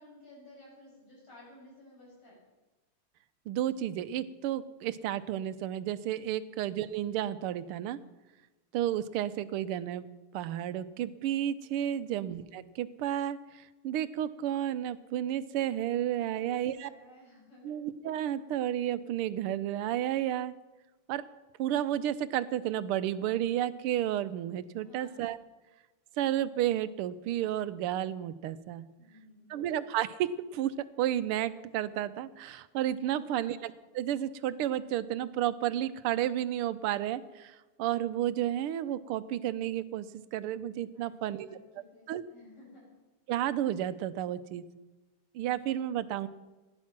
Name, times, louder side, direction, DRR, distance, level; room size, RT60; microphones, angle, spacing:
voice 1, 0.0-2.4 6.2-6.4 11.7-12.1 16.2-17.7 24.8-25.2 29.0-29.7 33.3-33.5 40.9-42.9, left 1 dB, 75° left, -4 dB, 7.7 m, -55 dB
voice 2, 3.5-8.0 8.7-10.1 10.3-16.9 17.6-20.5 21.1-21.2 21.6-25.4 26.2-28.8 29.5-41.5 42.1-42.2 43.3-44.6 45.3-46.3, right 11 dB, 85° right, 14 dB, 1.6 m, -32 dB
16.0 x 11.0 x 5.9 m, 1.2 s
omnidirectional pair, 2.4 m